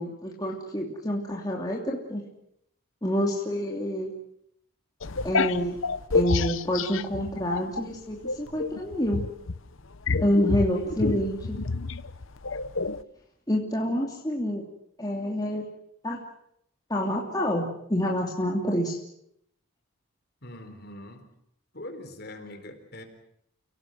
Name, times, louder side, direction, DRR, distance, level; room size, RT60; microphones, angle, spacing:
voice 1, 0.0-2.2 3.0-4.1 5.2-5.8 6.1-9.2 10.2-11.6 13.5-14.6 15.0-15.6 16.0-16.2 16.9-19.0, equal, 20° left, -1 dB, 2.9 m, -27 dB
sound 1, 5.0-7.9 8.2-13.0, left 4 dB, 70° left, 0.9 m, -28 dB
voice 2, 20.4-21.3 21.7-23.0, left 1 dB, 50° left, 6 dB, 4.2 m, -42 dB
30.0 x 18.0 x 7.8 m, 0.74 s
head